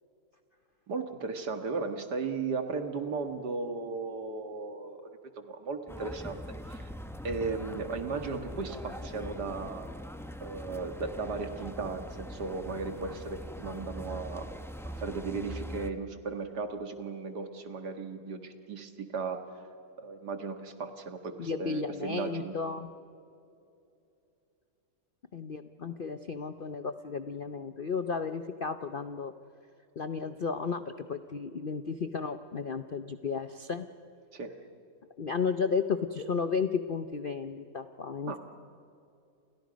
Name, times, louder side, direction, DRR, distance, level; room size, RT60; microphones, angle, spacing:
voice 1, 0.9-5.0 5.4-6.9 7.2-9.9 10.4-14.5 14.9-19.4 20.0-22.5 34.3-34.5 38.3-38.4, right 4 dB, 65° right, 6 dB, 2.3 m, -36 dB
sound 1, 5.9-15.9, equal, 5° left, 0.5 m, -42 dB
voice 2, 21.4-22.9 25.3-29.3 30.0-33.9 35.2-38.4, left 5 dB, 55° left, 9 dB, 0.6 m, -33 dB
29.0 x 29.0 x 5.2 m, 2.7 s
omnidirectional pair, 1.9 m